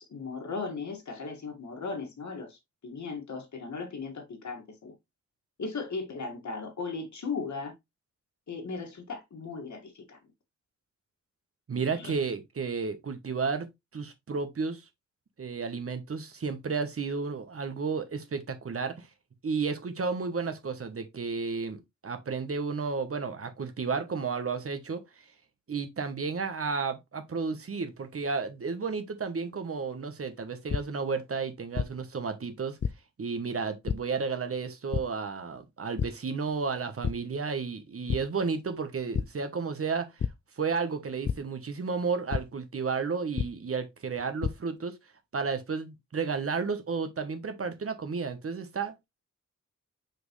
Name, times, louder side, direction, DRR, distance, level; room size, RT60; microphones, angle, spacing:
voice 1, 0.0-2.6 2.8-5.0 5.6-7.7 8.5-10.2 12.0-12.1, left 4 dB, 70° left, 2.1 m, -37 dB
voice 2, 11.7-13.7 13.9-14.8 15.4-19.1 19.4-25.0 25.7-32.8 33.2-40.1 40.6-45.0 45.3-49.0, right 5 dB, 50° right, 1.2 m, -32 dB
sound 1, 30.7-30.8 31.7-31.9 32.8-32.9 33.9-34.0 34.9-35.0 36.0-36.1 36.5-36.7 37.0-37.1 38.1-38.2 39.1-39.3 40.2-40.3 41.2-41.3 42.3-42.4 43.4-43.5 44.2-44.5, left 7 dB, 40° left, 0.4 m, -28 dB
6.0 x 5.3 x 3.2 m
wide cardioid pair, 155°, 30 cm